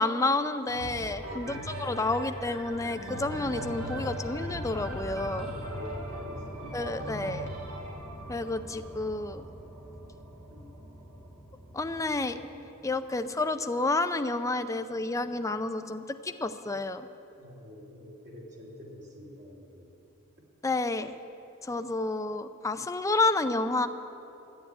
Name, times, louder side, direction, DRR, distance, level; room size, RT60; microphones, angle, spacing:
voice 1, 0.0-5.5 6.7-7.5 8.3-9.4 11.7-12.4 12.8-17.1 20.6-21.1 21.6-23.9, left 2 dB, 15° left, 9 dB, 0.5 m, -30 dB
sound 1, 0.7-10.5 11.1-11.2, right 1 dB, 80° right, 2.4 m, -39 dB
sound 2, 0.9-13.4, equal, 15° right, 1.5 m, -45 dB
voice 2, 1.4-1.8 5.4-7.3 10.5-10.8 17.3-19.9, left 1 dB, 55° right, -4 dB, 2.8 m, -47 dB
12.0 x 9.5 x 9.6 m, 2.9 s
head